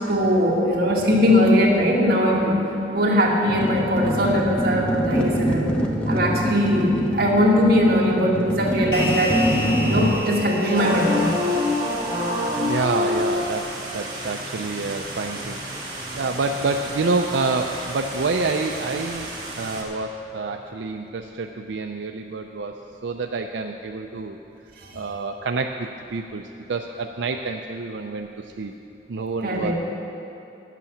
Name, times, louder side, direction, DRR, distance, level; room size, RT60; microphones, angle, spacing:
voice 1, 0.1-2.6 2.9-5.7 6.1-9.4 9.8-11.3 29.4-29.7, equal, 55° right, -3 dB, 2.0 m, -20 dB
sound 1, 3.5-10.1, equal, 5° left, 0.9 m, -24 dB
sound 2, 8.9-13.6, equal, 70° left, 1.8 m, -32 dB
sound 3, 10.7-19.8, left 1 dB, 25° right, 1.9 m, -28 dB
voice 2, 12.6-24.4 24.9-28.7 29.1-29.7, right 3 dB, 90° right, 4 dB, 0.5 m, -28 dB
11.5 x 8.3 x 7.2 m, 2.9 s
head